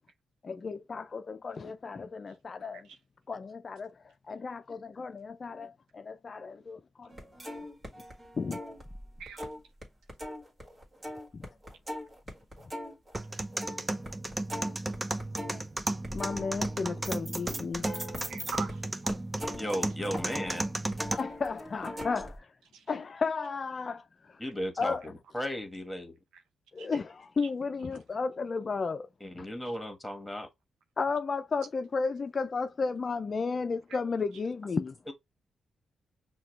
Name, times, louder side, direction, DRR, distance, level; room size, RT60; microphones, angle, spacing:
voice 1, 0.4-2.9 3.3-7.3 8.4-8.6 11.3-11.5 16.1-17.9 21.2-22.5 22.9-24.4 24.8-25.0 26.7-29.1 29.3-29.5 31.0-35.0, left 4 dB, 50° left, 0.4 m, -33 dB
sound 1, 7.1-9.8 10.1-18.7 19.1-22.4, equal, 35° right, 1.7 m, -41 dB
sound 2, 13.2-21.1, right 2 dB, 20° right, 0.6 m, -34 dB
voice 2, 18.3-19.1 22.7-22.8 26.3-26.4 26.8-26.9, right 6 dB, 80° right, 0.6 m, -42 dB
voice 3, 19.5-20.7 24.4-26.1 29.2-30.5 35.1-35.2, equal, 10° left, 1.5 m, -35 dB
5.6 x 2.3 x 3.2 m
hypercardioid pair, 40°, 0 cm